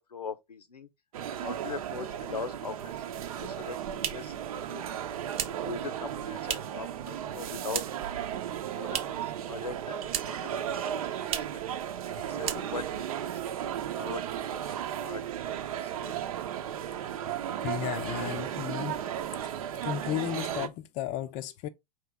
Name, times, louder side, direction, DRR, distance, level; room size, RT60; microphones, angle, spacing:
voice 1, 0.1-0.9 1.3-3.0 3.3-4.9 5.4-7.8 8.2-8.5 8.7-11.6 12.2-13.4 13.7-14.6 14.9-15.2 15.5-16.1, left 5 dB, 90° left, 0.8 m, -41 dB
sound 1, 1.1-20.7, right 10 dB, 65° right, 0.8 m, -35 dB
sound 2, 4.0-6.9 7.2-8.1 8.4-9.3 9.6-10.5 10.8-10.9 11.2-11.6 12.0-12.1 12.4-13.0, right 9 dB, 30° right, 0.8 m, -36 dB
voice 2, 17.6-19.0 19.4-19.5 19.8-21.7, left 11 dB, 40° left, 0.5 m, -34 dB
4.8 x 3.0 x 3.5 m
hypercardioid pair, 105°, 20 cm